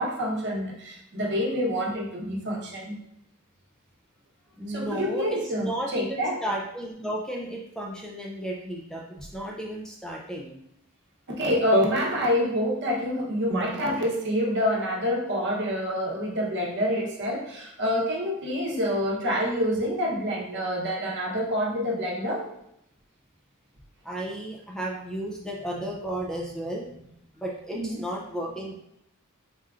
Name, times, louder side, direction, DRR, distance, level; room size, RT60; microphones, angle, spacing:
voice 1, 0.0-3.0 4.7-6.4 11.3-22.5 27.7-28.0, equal, 55° right, -2 dB, 0.9 m, -27 dB
voice 2, 4.6-10.5 24.0-28.7, right 1 dB, 5° left, -2 dB, 0.4 m, -34 dB
4.2 x 3.5 x 2.4 m, 0.80 s
head